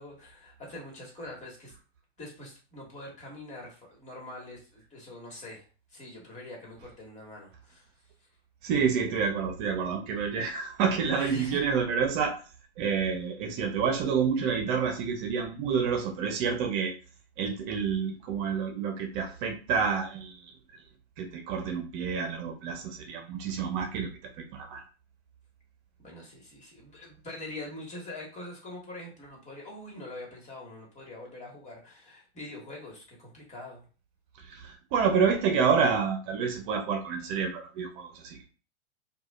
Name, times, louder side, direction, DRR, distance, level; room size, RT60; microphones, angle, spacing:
voice 1, 0.0-1.7 2.2-7.9 11.1-11.6 26.0-33.8, left 1 dB, 20° left, -2 dB, 1.8 m, -44 dB
voice 2, 8.6-12.4 12.8-16.9 17.4-20.4 21.2-24.1 24.5-24.8 34.4-38.5, right 6 dB, 50° right, 4 dB, 0.9 m, -28 dB
4.7 x 2.5 x 2.5 m, 0.35 s
hypercardioid pair, 125°, 33 cm